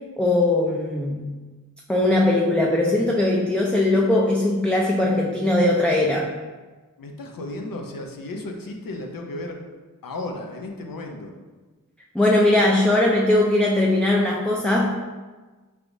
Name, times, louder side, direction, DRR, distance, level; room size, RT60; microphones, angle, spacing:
voice 1, 0.2-1.3 1.9-6.3 12.1-14.9, left 1 dB, 5° left, -2 dB, 0.4 m, -20 dB
voice 2, 7.0-9.6 10.0-11.3, left 2 dB, 85° left, 2 dB, 0.6 m, -34 dB
4.6 x 3.3 x 2.6 m, 1.3 s
wide cardioid pair, 80°, 33 cm